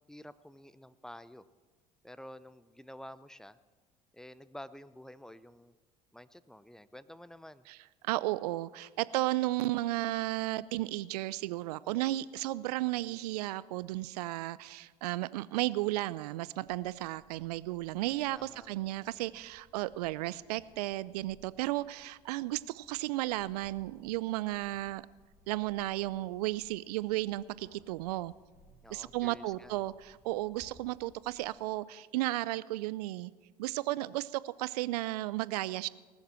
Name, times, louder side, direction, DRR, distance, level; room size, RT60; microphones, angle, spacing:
voice 1, 0.0-1.5 2.0-3.6 4.1-5.7 6.1-7.7 18.4-18.7 28.8-29.8 30.3-30.4, left 1 dB, 5° left, 16 dB, 0.7 m, -50 dB
voice 2, 8.0-25.0 25.5-28.3 28.9-33.3 33.6-35.9, right 17 dB, 75° right, 19 dB, 0.5 m, -34 dB
sound 1, 16.6-31.5, left 1 dB, 50° left, 3.8 m, -64 dB
19.0 x 7.3 x 7.6 m, 1.4 s
hypercardioid pair, 65°, 20 cm